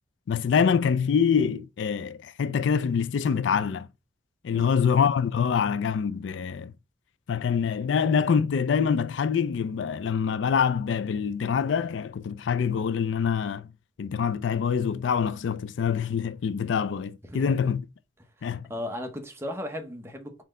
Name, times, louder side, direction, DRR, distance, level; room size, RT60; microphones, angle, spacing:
voice 1, 0.3-3.9 4.4-6.7 7.3-13.7 14.0-17.8 18.4-18.7, left 6 dB, 80° left, 0.4 m, -25 dB
voice 2, 18.4-20.4, left 1 dB, 15° right, 0.8 m, -36 dB
4.2 x 3.2 x 3.7 m
head